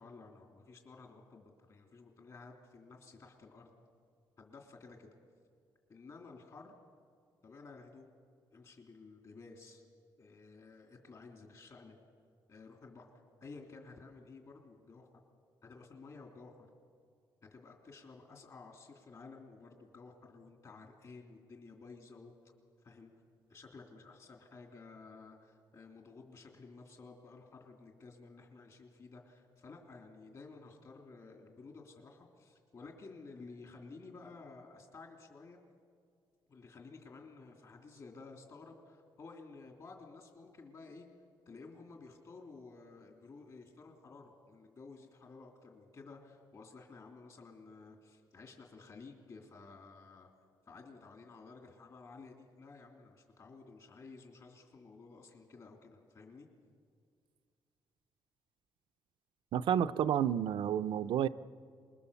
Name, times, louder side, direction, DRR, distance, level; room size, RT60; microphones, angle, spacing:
voice 1, 0.0-3.7 4.4-5.1 5.9-6.7 7.4-8.1 8.5-9.8 10.2-12.0 12.5-13.1 13.4-15.1 15.6-16.7 17.4-22.3 22.8-23.1 23.5-35.6 36.5-41.1 41.4-50.3 50.7-56.5, left 4 dB, 45° left, 2 dB, 3.1 m, -53 dB
voice 2, 59.5-61.3, right 9 dB, 80° right, 11 dB, 0.5 m, -30 dB
27.0 x 21.0 x 7.0 m, 2.1 s
cardioid pair, 140°, 8 cm